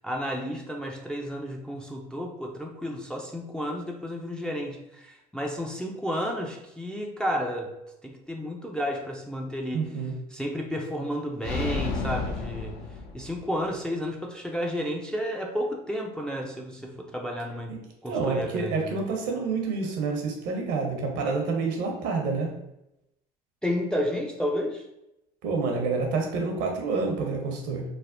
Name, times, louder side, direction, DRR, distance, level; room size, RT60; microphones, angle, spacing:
voice 1, 0.0-7.7 8.0-9.9 10.3-12.8 13.1-17.7 18.0-19.0 23.6-24.8, equal, 5° left, 0 dB, 0.4 m, -32 dB
voice 2, 9.7-10.1 18.1-22.5 25.4-27.8, right 4 dB, 65° right, 2 dB, 0.8 m, -28 dB
sound 1, 11.4-13.6, left 3 dB, 65° left, 0.6 m, -32 dB
3.3 x 2.1 x 2.5 m, 0.87 s
hypercardioid pair, 75°, 20 cm